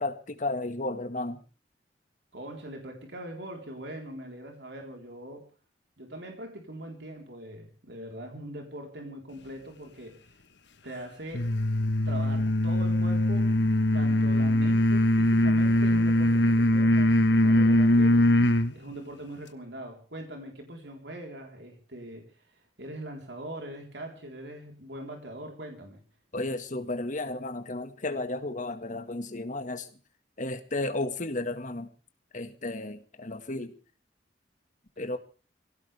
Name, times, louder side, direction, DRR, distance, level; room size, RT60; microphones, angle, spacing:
voice 1, 0.0-1.4 26.3-29.9 30.4-31.9 32.3-33.7 35.0-35.2, left 2 dB, 45° left, 8 dB, 1.8 m, -33 dB
voice 2, 2.3-5.5 6.0-10.2 10.8-11.5 12.1-13.5 13.9-18.2 18.7-22.5 22.8-26.0, right 1 dB, 70° right, 3 dB, 4.1 m, -42 dB
sound 1, 11.3-18.7, left 1 dB, 75° left, 1.3 m, -22 dB
24.0 x 17.0 x 3.5 m, 0.36 s
head